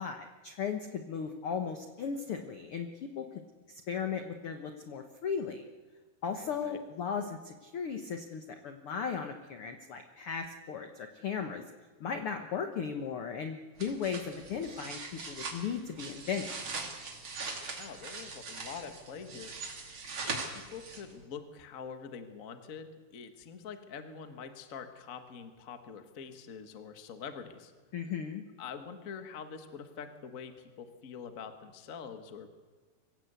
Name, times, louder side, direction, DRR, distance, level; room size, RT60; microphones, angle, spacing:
voice 1, 0.0-2.9 3.2-3.3 3.7-5.6 6.2-11.6 12.0-16.5 27.9-28.4, left 6 dB, 70° left, 6 dB, 1.3 m, -36 dB
voice 2, 6.4-6.8 17.8-27.7 28.6-32.5, left 6 dB, 50° left, 8 dB, 0.9 m, -45 dB
sound 1, 13.8-21.2, right 4 dB, 35° right, 3.0 m, -41 dB
24.0 x 16.0 x 8.2 m, 1.4 s
omnidirectional pair, 4.2 m